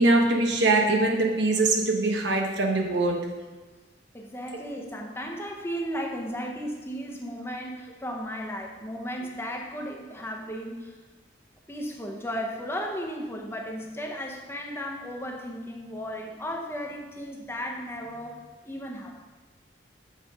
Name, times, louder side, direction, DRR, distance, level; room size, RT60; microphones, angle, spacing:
voice 1, 0.0-3.3, right 2 dB, 80° right, 1 dB, 1.1 m, -22 dB
voice 2, 4.1-11.0 11.7-19.2, equal, 15° left, 0 dB, 0.7 m, -35 dB
7.8 x 4.2 x 5.3 m, 1.3 s
head